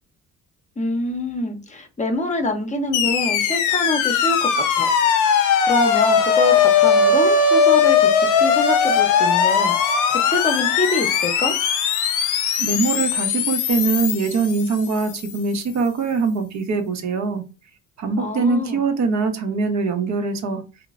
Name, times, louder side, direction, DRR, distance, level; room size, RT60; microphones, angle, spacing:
voice 1, 0.8-4.9 5.7-11.5 18.2-18.8, left 2 dB, 25° left, 0.6 m, -25 dB
sound 1, 2.9-15.2, left 6 dB, 80° left, 0.5 m, -19 dB
voice 2, 12.6-17.4 18.0-20.6, right 4 dB, 65° right, 0.7 m, -22 dB
2.9 x 2.0 x 2.4 m
cardioid pair, 90°, 30 cm